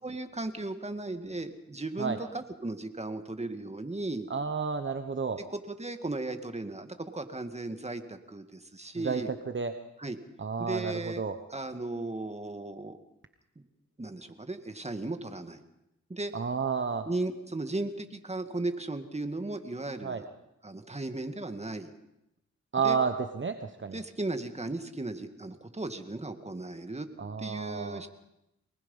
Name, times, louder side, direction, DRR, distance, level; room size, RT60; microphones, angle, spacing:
voice 1, 0.0-4.3 5.4-9.3 10.0-10.2 10.6-11.2 11.5-13.0 13.6-13.7 14.0-15.6 16.1-16.3 17.1-20.3 20.6-21.9 22.8-23.0 23.9-27.1 27.4-28.1, right 2 dB, 20° right, 7 dB, 2.0 m, -36 dB
voice 2, 4.3-5.4 9.0-9.2 9.5-9.7 10.4-11.4 16.3-17.1 20.0-20.2 22.7-24.0 27.2-28.0, right 5 dB, 40° right, 8 dB, 1.2 m, -31 dB
23.5 x 19.5 x 5.6 m, 0.88 s
cardioid pair, 60°, 29 cm